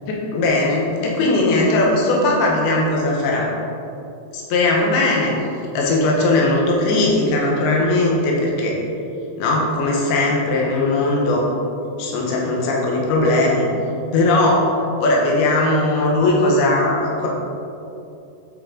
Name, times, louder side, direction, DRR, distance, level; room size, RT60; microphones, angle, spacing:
voice 1, 0.1-3.5 4.3-5.3 5.7-8.8 9.4-11.4 12.0-13.6 14.1-14.7 15.0-17.3, left 2 dB, 85° left, -2 dB, 3.0 m, -18 dB
8.6 x 5.8 x 3.7 m, 2.7 s
omnidirectional pair, 4.4 m